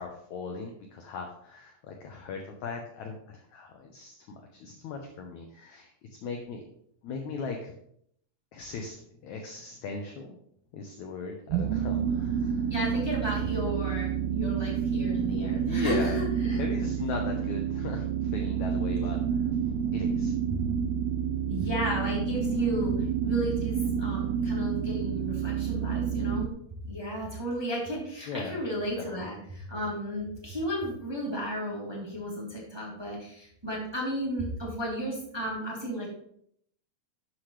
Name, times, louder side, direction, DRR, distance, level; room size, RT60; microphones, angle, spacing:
voice 1, 0.0-4.1 4.5-5.9 6.2-6.6 7.0-7.7 8.5-10.4 10.7-12.7 15.7-19.6 19.9-20.3 28.3-28.6 29.0-29.3, left 4 dB, 70° left, 3 dB, 1.9 m, -38 dB
sound 1, 11.5-26.5, right 7 dB, 85° right, 2.5 m, -29 dB
voice 2, 12.7-16.6 21.5-26.5 26.8-36.1, equal, 5° right, -5 dB, 2.6 m, -34 dB
12.0 x 7.9 x 3.3 m, 0.69 s
omnidirectional pair, 4.3 m